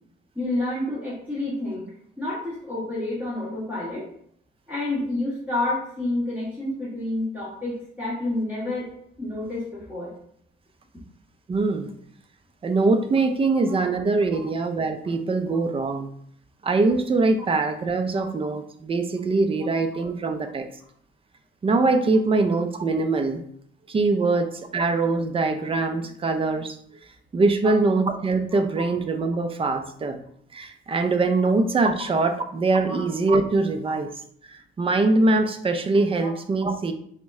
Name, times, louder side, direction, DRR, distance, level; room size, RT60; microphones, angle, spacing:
voice 1, 0.3-1.9 2.2-4.1 4.7-8.9 9.2-10.1 13.4-13.5 17.4-17.6 18.1-18.3 22.3-22.4 32.9-33.0 36.2-36.3, left 2 dB, 10° right, -10 dB, 1.4 m, -29 dB
voice 2, 11.5-11.9 12.6-16.1 16.6-20.7 21.6-23.4 23.9-26.8 27.3-30.2 30.5-34.1 34.5-36.9, right 3 dB, 30° right, 7 dB, 0.5 m, -23 dB
4.0 x 2.1 x 3.5 m, 0.66 s
cardioid pair, 90°, 20 cm